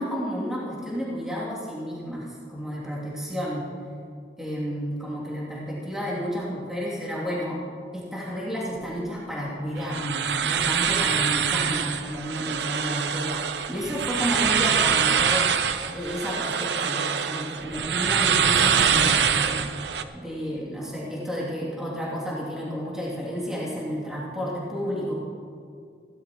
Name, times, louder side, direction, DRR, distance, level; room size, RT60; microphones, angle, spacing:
voice 1, 0.0-3.7 4.4-7.6 7.9-15.5 15.9-19.6 20.1-25.2, equal, 5° right, -7 dB, 2.8 m, -31 dB
sound 1, 9.8-20.0, right 7 dB, 75° right, 0.6 m, -24 dB
16.5 x 12.5 x 3.1 m, 2.4 s
head